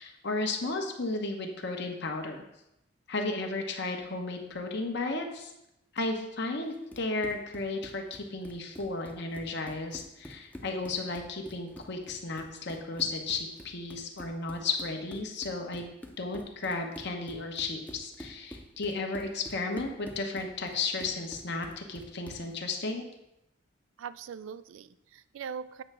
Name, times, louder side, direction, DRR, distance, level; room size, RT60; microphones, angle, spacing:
voice 1, 0.0-2.4 3.1-5.5 5.9-15.9 16.2-23.0, left 3 dB, 60° left, 3 dB, 1.1 m, -34 dB
Run, 6.7-22.5, equal, 5° left, 0.6 m, -49 dB
voice 2, 24.0-25.8, right 7 dB, 80° right, 15 dB, 0.3 m, -41 dB
7.9 x 3.3 x 6.1 m, 0.86 s
head